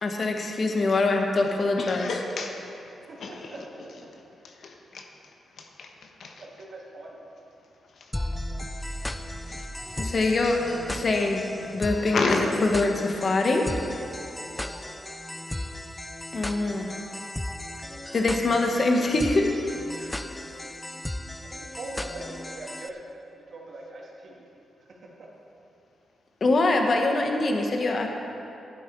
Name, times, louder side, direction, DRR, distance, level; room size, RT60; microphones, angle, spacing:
voice 1, 0.0-2.1 10.0-10.6 10.9-11.5 11.7-14.0 16.3-16.9 18.1-19.5 26.4-28.1, left 2 dB, 35° left, 2 dB, 1.3 m, -24 dB
voice 2, 1.8-2.6 3.2-3.5 4.4-5.1 5.6-6.4 8.0-8.1 9.1-10.0 12.1-12.4 20.0-20.1, left 4 dB, 60° left, 2 dB, 1.1 m, -32 dB
voice 3, 3.1-3.8 6.4-7.1 14.4-14.7 21.4-24.4 24.8-25.0, right 2 dB, 55° right, -2 dB, 2.3 m, -42 dB
sound 1, 8.1-22.9, left 1 dB, 10° left, 0.4 m, -36 dB
12.0 x 11.5 x 4.7 m, 2.8 s
wide cardioid pair, 145°, 0 cm